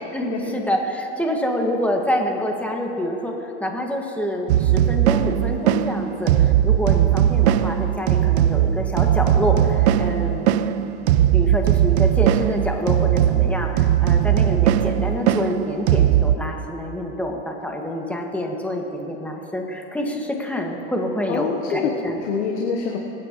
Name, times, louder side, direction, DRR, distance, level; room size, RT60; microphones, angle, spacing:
voice 1, 0.1-10.6 11.3-22.2, left 1 dB, 5° left, 1 dB, 2.0 m, -27 dB
sound 1, 4.5-16.4, right 11 dB, 75° right, 0.6 m, -19 dB
voice 2, 21.3-21.9 22.2-23.0, left 6 dB, 75° left, 0 dB, 1.3 m, -25 dB
25.5 x 9.0 x 3.2 m, 3.0 s
hypercardioid pair, 85°, 34 cm